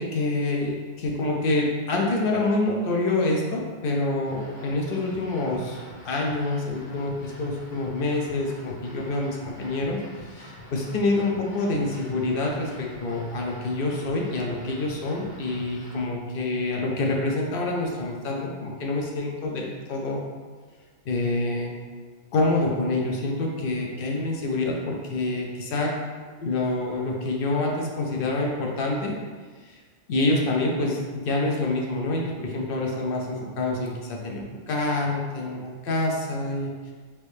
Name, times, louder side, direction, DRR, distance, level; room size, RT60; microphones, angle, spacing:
voice 1, 0.0-5.8 6.0-20.2 21.1-21.8 22.3-26.0 26.4-29.1 30.1-36.9, left 2 dB, 60° left, -1 dB, 0.7 m, -27 dB
sound 1, 4.2-16.0, left 1 dB, 80° left, 1.2 m, -45 dB
3.1 x 2.6 x 3.2 m, 1.5 s
omnidirectional pair, 1.2 m